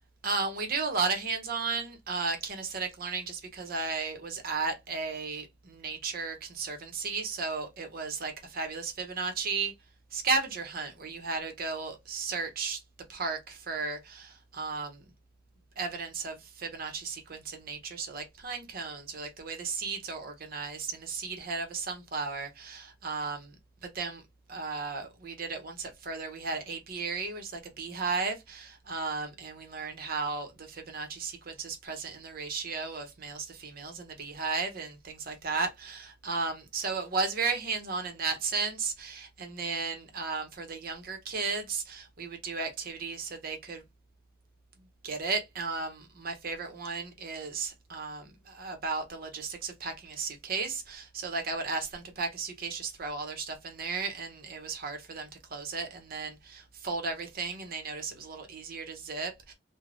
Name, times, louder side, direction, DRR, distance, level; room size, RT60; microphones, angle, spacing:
voice 1, 0.2-9.7 10.1-12.8 13.1-15.0 15.8-23.5 23.9-24.2 24.5-43.8 45.0-59.5, right 4 dB, 50° right, 0.7 m, -34 dB
3.2 x 2.1 x 2.4 m
head